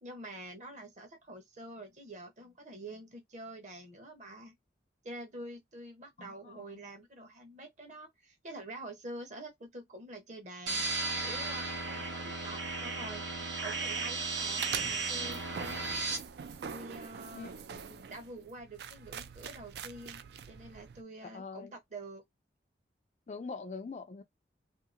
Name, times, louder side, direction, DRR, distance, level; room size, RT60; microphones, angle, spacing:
voice 1, 0.0-4.5 5.0-10.9 11.1-15.9 16.6-17.6 18.1-22.2, right 1 dB, 40° right, 0.9 m, -47 dB
voice 2, 6.2-6.9 17.3-18.0 21.2-21.7 23.3-24.2, left 4 dB, 35° left, 0.3 m, -44 dB
sound 1, 10.7-16.2, right 3 dB, 85° right, 1.1 m, -35 dB
sound 2, 14.6-21.0, right 7 dB, 60° right, 0.3 m, -44 dB
2.8 x 2.8 x 2.4 m
head